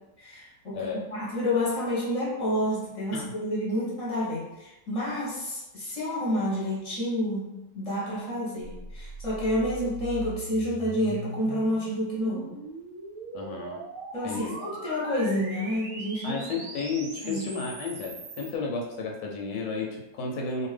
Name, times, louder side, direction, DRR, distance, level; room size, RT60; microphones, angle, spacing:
voice 1, 0.2-12.5 14.1-16.4 17.2-17.5, left 1 dB, 30° left, -7 dB, 0.7 m, -29 dB
sound 1, 8.6-18.5, right 3 dB, 70° right, 0.9 m, -41 dB
voice 2, 13.3-13.8 14.2-14.6 16.2-20.7, left 4 dB, 85° left, 0 dB, 1.2 m, -32 dB
2.7 x 2.3 x 3.2 m, 0.94 s
omnidirectional pair, 1.8 m